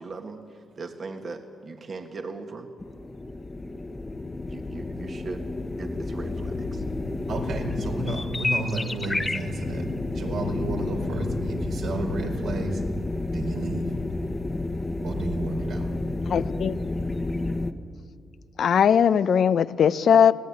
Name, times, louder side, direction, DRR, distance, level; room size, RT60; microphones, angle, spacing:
voice 1, 0.0-2.7 4.5-5.4 5.8-6.8, right 3 dB, 45° right, 4 dB, 1.7 m, -39 dB
sound 1, 2.8-17.7, left 2 dB, 20° left, 1.2 m, -30 dB
voice 2, 7.3-12.8 13.3-13.8 15.0-15.9, right 2 dB, 75° right, 2 dB, 4.6 m, -31 dB
voice 3, 16.3-16.8 18.6-20.3, left 8 dB, 65° left, 13 dB, 0.7 m, -19 dB
25.0 x 17.5 x 9.7 m, 2.2 s
cardioid pair, 100°, 0 cm